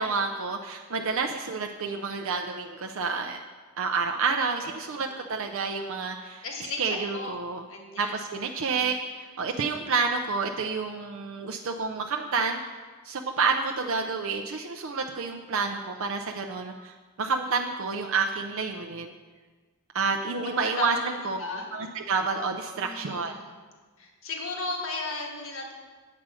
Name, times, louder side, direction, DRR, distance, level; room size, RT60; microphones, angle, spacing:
voice 1, 0.0-3.4 3.8-6.4 6.8-7.6 8.0-12.6 13.0-19.1 19.9-21.4 21.7-23.3, right 4 dB, 65° right, 3 dB, 0.5 m, -29 dB
voice 2, 6.4-7.4 7.7-8.1 8.6-8.9 9.7-9.9 15.9-16.1 20.4-21.7 22.8-23.6 24.0-25.7, left 3 dB, 60° left, 1 dB, 1.4 m, -36 dB
8.6 x 7.4 x 4.8 m, 1.4 s
head